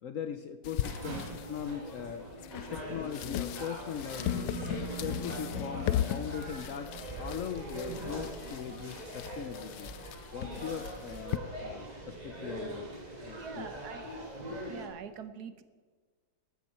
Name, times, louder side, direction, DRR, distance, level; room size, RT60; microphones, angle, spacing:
voice 1, 0.0-2.3 2.7-4.3 4.8-9.9 10.3-12.9 13.2-13.8 14.5-14.7, left 8 dB, 65° left, 9 dB, 0.8 m, -40 dB
sound 1, 0.6-11.4, left 12 dB, 80° left, 1.3 m, -38 dB
sound 2, 0.8-14.9, right 1 dB, 20° right, 2.5 m, -42 dB
Keyboard (musical), 4.3-7.5, right 8 dB, 35° left, 2.1 m, -45 dB
voice 2, 13.4-14.1 14.7-15.6, right 7 dB, 65° right, 11 dB, 1.3 m, -44 dB
13.5 x 13.0 x 4.4 m, 1.5 s
omnidirectional pair, 1.9 m